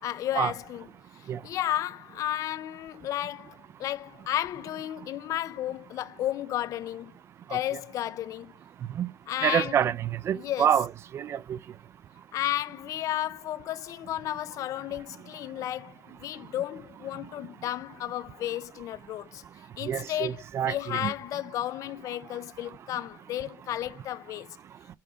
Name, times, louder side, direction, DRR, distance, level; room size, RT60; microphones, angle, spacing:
voice 1, 0.0-0.9 1.1-7.1 7.5-8.5 9.3-9.8 10.3-10.7 12.3-19.4 19.8-24.5, left 12 dB, 50° left, 0.4 m, -33 dB
voice 2, 9.4-11.6 19.9-21.1, right 9 dB, 40° right, 0.3 m, -27 dB
5.7 x 4.7 x 5.0 m
cardioid pair, 170°, 7 cm